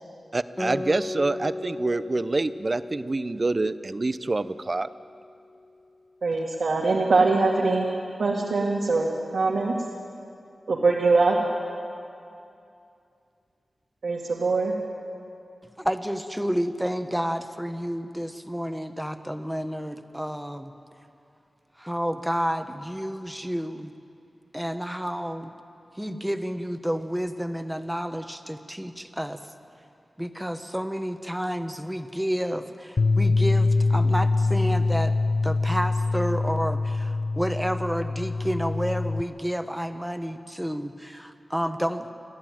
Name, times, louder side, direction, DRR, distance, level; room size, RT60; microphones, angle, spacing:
voice 1, 0.3-4.9, right 2 dB, 40° right, 14 dB, 0.6 m, -26 dB
Guitar, 0.6-5.5, left 2 dB, 15° left, 2.0 m, -36 dB
voice 2, 6.2-7.9 8.2-9.8 10.7-11.4 14.0-14.8, right 3 dB, 80° right, -3 dB, 2.3 m, -22 dB
voice 3, 15.8-20.7 21.8-23.9 24.5-25.5 26.0-29.4 30.2-35.1 35.4-42.1, equal, 5° right, 8 dB, 1.2 m, -30 dB
Bass guitar, 33.0-39.2, left 3 dB, 60° left, 0.4 m, -24 dB
28.5 x 11.5 x 9.2 m, 2.5 s
wide cardioid pair, 80°, 0 cm